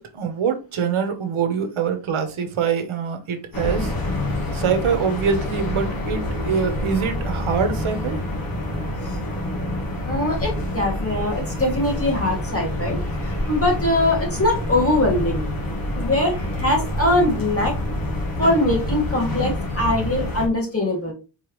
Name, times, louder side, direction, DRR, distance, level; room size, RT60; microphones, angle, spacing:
voice 1, 0.0-3.9 4.5-8.2, right 6 dB, 85° right, 1.0 m, -24 dB
sound 1, 3.5-20.5, left 1 dB, 45° left, 1.5 m, -27 dB
voice 2, 10.0-15.5 16.0-17.7 18.4-21.1, left 1 dB, 30° left, 1.9 m, -22 dB
4.5 x 3.2 x 3.1 m
wide cardioid pair, 155°, 47 cm